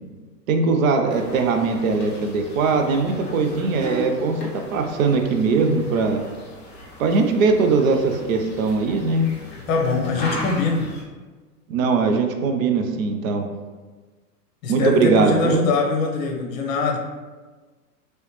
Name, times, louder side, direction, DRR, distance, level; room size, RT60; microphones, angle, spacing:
voice 1, 0.5-6.2 7.0-9.3 11.7-13.5 14.7-15.7, right 4 dB, 55° right, 5 dB, 0.6 m, -20 dB
sound 1, 1.1-11.0, left 1 dB, 20° left, 0.9 m, -37 dB
voice 2, 9.7-10.9 14.6-17.0, left 3 dB, 55° left, 2 dB, 0.9 m, -23 dB
3.0 x 3.0 x 3.1 m, 1.3 s
hypercardioid pair, 125°, 48 cm